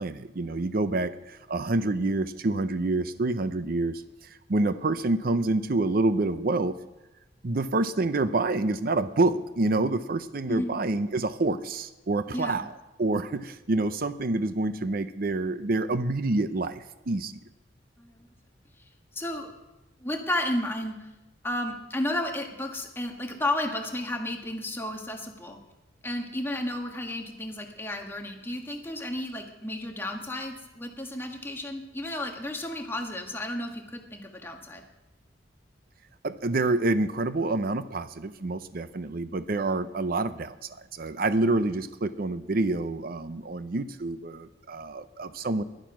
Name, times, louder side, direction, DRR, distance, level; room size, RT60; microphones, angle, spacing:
voice 1, 0.0-4.0 4.5-6.7 7.4-12.7 13.0-17.3 36.2-45.6, right 2 dB, 55° right, 12 dB, 0.6 m, -27 dB
voice 2, 19.1-19.5 20.0-21.1 21.4-25.6 26.0-34.8, left 1 dB, 15° left, 3 dB, 1.4 m, -32 dB
14.5 x 11.5 x 6.1 m, 1.0 s
head